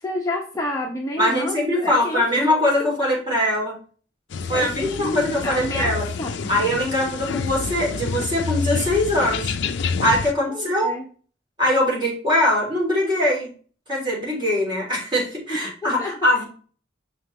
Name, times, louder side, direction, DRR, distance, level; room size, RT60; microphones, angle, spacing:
voice 1, 0.0-2.2 2.5-3.1 4.5-6.3 10.5-11.1 15.6-16.1, left 1 dB, 15° left, -1 dB, 0.8 m, -30 dB
voice 2, 1.2-3.7 4.5-6.0 6.5-9.5 10.0-10.9 11.6-13.5 13.9-16.4, left 1 dB, 25° right, -3 dB, 3.2 m, -22 dB
sound 1, 4.3-10.3, left 5 dB, 60° left, 0.5 m, -28 dB
6.8 x 5.6 x 3.2 m, 0.40 s
head